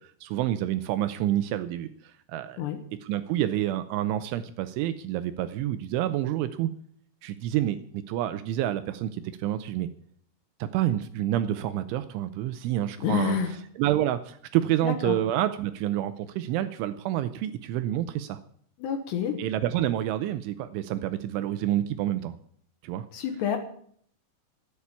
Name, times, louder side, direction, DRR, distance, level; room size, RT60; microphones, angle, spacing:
voice 1, 0.0-2.6 3.0-6.7 7.2-9.9 10.6-18.4 19.4-22.4 22.8-23.1, right 12 dB, 80° right, 11 dB, 2.9 m, -28 dB
voice 2, 13.0-13.5 14.8-15.1 18.8-19.4 23.1-23.6, left 9 dB, 70° left, 6 dB, 3.0 m, -28 dB
14.0 x 8.8 x 8.3 m, 0.62 s
omnidirectional pair, 5.9 m